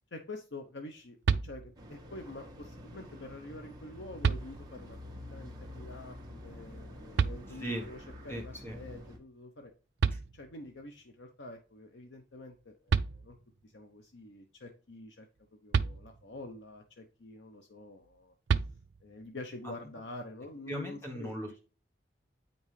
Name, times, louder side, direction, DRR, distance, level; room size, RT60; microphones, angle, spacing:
voice 1, 0.1-9.7 10.3-13.4 13.6-15.3 15.5-18.3 19.0-21.5, left 2 dB, 85° left, 4 dB, 0.8 m, -47 dB
sound 1, 1.2-2.0 3.5-3.6 4.2-5.0 7.2-7.9 9.7-9.8 10.0-10.8 12.5-12.6 12.9-13.6 15.7-16.5 18.5-19.2, right 5 dB, 70° right, 0.4 m, -31 dB
sound 2, 1.8-9.2, left 1 dB, 20° right, 1.3 m, -48 dB
voice 2, 8.3-8.7 10.1-10.2 20.7-21.6, equal, 15° left, 1 dB, 1.0 m, -38 dB
8.4 x 5.3 x 3.2 m, 0.35 s
head